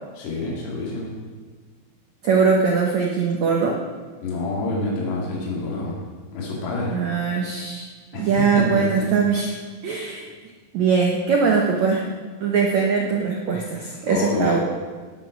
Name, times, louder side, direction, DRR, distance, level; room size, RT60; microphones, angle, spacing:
voice 1, 0.2-1.1 4.2-6.0 6.3-7.0 8.1-9.1 14.1-14.6, left 2 dB, 75° left, -4 dB, 5.0 m, -27 dB
voice 2, 2.2-3.8 6.9-7.9 8.1-9.5 9.8-10.3 10.7-12.1 12.4-14.6, right 5 dB, 75° right, 0 dB, 1.6 m, -21 dB
19.0 x 7.3 x 6.2 m, 1.5 s
omnidirectional pair, 4.9 m